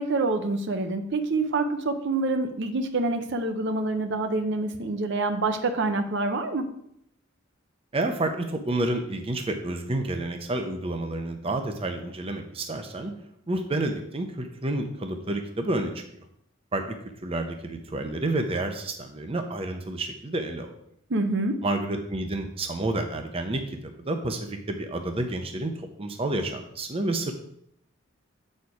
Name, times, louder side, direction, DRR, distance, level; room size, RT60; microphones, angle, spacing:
voice 1, 0.0-6.7 21.1-21.6, right 3 dB, 60° right, 7 dB, 0.7 m, -26 dB
voice 2, 7.9-13.1 13.5-15.9 16.7-17.0 17.2-20.7 21.6-23.8 24.1-25.7 26.0-27.3, right 2 dB, 30° right, 5 dB, 0.6 m, -29 dB
8.1 x 4.4 x 4.7 m, 0.74 s
head